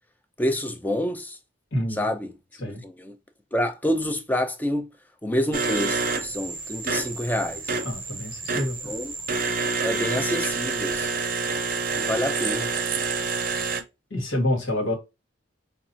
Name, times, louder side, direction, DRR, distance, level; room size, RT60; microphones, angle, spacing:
voice 1, 0.4-1.4 2.0-2.3 2.7-3.1 3.5-4.9 5.2-7.8 8.8-9.1 9.8-11.1 11.9-12.7, equal, 10° left, 0.5 m, -27 dB
voice 2, 1.7-2.1 2.6-2.8 7.8-9.0 14.1-14.9, left 1 dB, 75° left, 1.6 m, -27 dB
sound 1, 5.5-13.8, right 4 dB, 45° right, 0.6 m, -28 dB
5.8 x 2.5 x 2.7 m
head